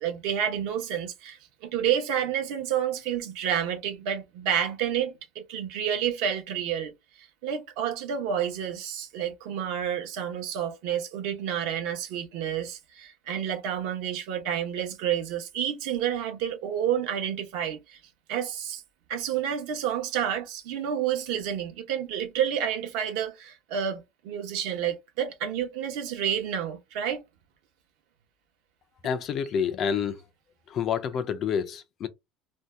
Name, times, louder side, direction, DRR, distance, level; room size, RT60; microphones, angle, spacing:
voice 1, 0.0-6.9 7.4-18.0 18.3-18.8 19.1-27.2, right 9 dB, 60° right, 0.8 m, -29 dB
voice 2, 29.0-30.2 30.7-32.1, left 7 dB, 30° left, 0.3 m, -28 dB
2.6 x 2.1 x 3.3 m
cardioid pair, 175°, 0 cm